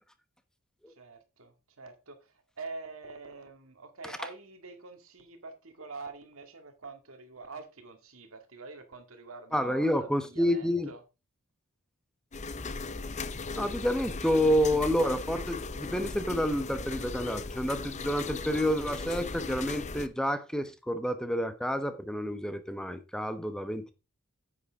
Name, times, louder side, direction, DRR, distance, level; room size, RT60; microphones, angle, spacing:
voice 1, 1.0-11.0, right 3 dB, 70° right, 2.0 m, -45 dB
voice 2, 9.5-10.9 13.5-23.9, equal, 5° left, 0.9 m, -29 dB
sound 1, 12.3-20.1, left 3 dB, 35° left, 0.7 m, -37 dB
9.7 x 8.5 x 3.5 m
head